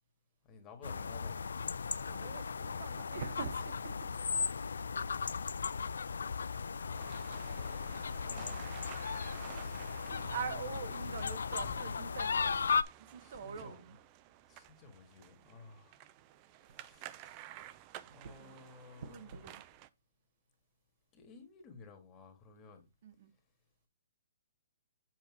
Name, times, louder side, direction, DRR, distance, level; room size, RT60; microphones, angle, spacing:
voice 1, 0.4-1.5 1.9-2.4 6.7-8.6 10.1-11.0 11.5-11.8 13.2-13.8 14.5-16.1 16.6-17.7 18.0-19.5 21.1-22.8, left 4 dB, 20° left, 1.6 m, -54 dB
sound 1, 0.8-12.8, left 5 dB, 85° left, 0.3 m, -36 dB
voice 2, 2.1-4.1 10.1-12.6 13.0-14.0 17.6-17.7 18.2-18.5 19.0-19.6 23.0-23.3, right 6 dB, 55° right, 0.8 m, -44 dB
sound 2, 6.9-19.9, right 13 dB, 30° right, 0.4 m, -54 dB
7.5 x 2.8 x 6.0 m
hypercardioid pair, 155°, 0 cm